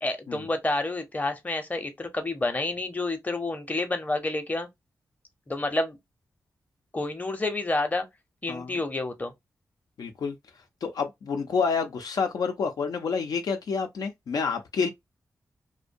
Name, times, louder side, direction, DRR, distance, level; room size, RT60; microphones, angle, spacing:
voice 1, 0.0-4.7 5.5-6.0 6.9-8.1 8.4-9.3, left 2 dB, 25° left, 0.6 m, -29 dB
voice 2, 8.5-8.8 10.0-10.4 10.8-14.9, left 5 dB, 80° left, 0.5 m, -28 dB
2.5 x 2.1 x 2.5 m
cardioid pair, 75°, 7 cm